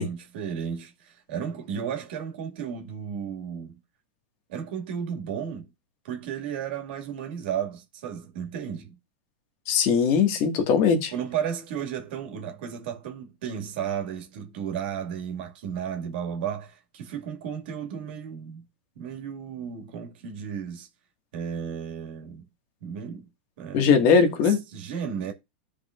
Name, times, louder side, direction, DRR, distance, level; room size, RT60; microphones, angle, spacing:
voice 1, 0.0-3.8 4.5-5.7 6.0-9.0 11.1-18.6 19.0-20.9 21.3-22.4 22.8-23.3 23.6-24.0 24.4-25.3, right 8 dB, 65° right, 2.1 m, -34 dB
voice 2, 9.7-11.1 23.7-24.6, left 6 dB, 50° left, 1.9 m, -20 dB
14.0 x 4.9 x 2.5 m
hypercardioid pair, 125°, 6 cm